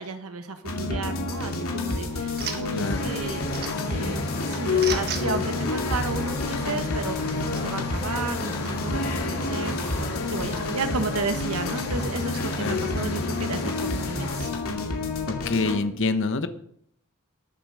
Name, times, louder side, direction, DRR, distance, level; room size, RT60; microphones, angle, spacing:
voice 1, 0.0-4.2 4.5-14.5, right 3 dB, 80° right, 8 dB, 1.3 m, -33 dB
sound 1, 0.6-15.8, left 3 dB, 70° left, 2.5 m, -29 dB
sound 2, 1.3-6.7, right 6 dB, 45° right, 1.7 m, -39 dB
sound 3, 2.7-14.4, left 2 dB, 90° left, 2.8 m, -33 dB
voice 2, 2.7-3.1 12.6-12.8 15.3-16.5, left 3 dB, 55° left, 10 dB, 1.1 m, -26 dB
19.5 x 7.7 x 4.9 m, 0.68 s
head